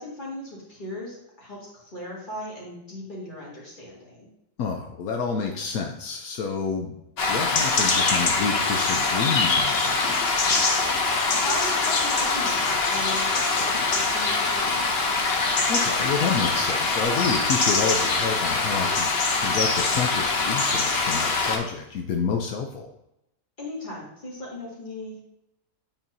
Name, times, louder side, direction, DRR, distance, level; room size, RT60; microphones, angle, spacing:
voice 1, 0.0-4.3 11.4-15.4 23.6-25.2, left 1 dB, 35° left, -5 dB, 2.4 m, -37 dB
voice 2, 4.6-7.0 7.3-10.3 15.7-19.1 19.4-22.9, left 5 dB, 80° left, 3 dB, 1.2 m, -29 dB
sound 1, 7.2-21.6, left 3 dB, 50° left, 1.0 m, -23 dB
8.7 x 4.5 x 2.7 m, 0.84 s
omnidirectional pair, 1.5 m